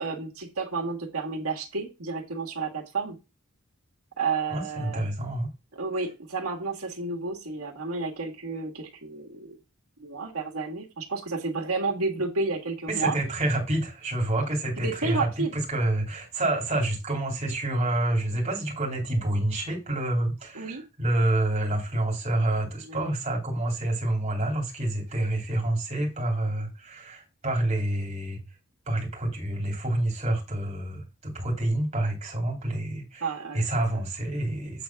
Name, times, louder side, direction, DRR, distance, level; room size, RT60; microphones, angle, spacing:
voice 1, 0.0-3.1 4.2-5.0 5.7-9.6 10.0-13.2 14.8-15.5 20.5-20.8 22.8-23.1 33.2-33.7 33.9-34.0, right 4 dB, 85° right, 1.7 m, -31 dB
voice 2, 4.5-5.5 12.9-28.4 28.9-33.3 33.5-34.8, right 1 dB, 30° right, 2.6 m, -28 dB
8.2 x 3.6 x 5.7 m
head